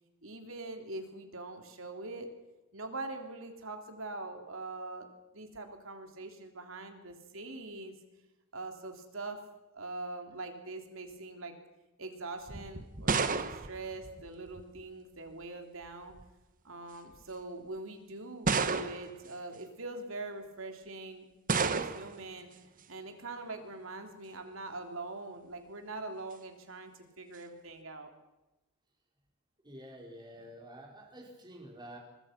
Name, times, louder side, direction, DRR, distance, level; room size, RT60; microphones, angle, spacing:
voice 1, 0.2-2.3 2.7-5.1 5.3-7.9 8.5-9.4 9.7-11.5 12.0-16.1 16.6-21.2 21.6-22.5 22.9-28.1, right 2 dB, 70° right, 5 dB, 3.5 m, -43 dB
sound 1, 12.5-14.8 15.9-16.3 17.1-17.2 18.5-19.3 21.5-22.2, right 4 dB, 40° right, 1.3 m, -32 dB
voice 2, 29.6-32.0, equal, 20° right, 0 dB, 5.0 m, -49 dB
24.0 x 22.5 x 6.0 m, 1.0 s
head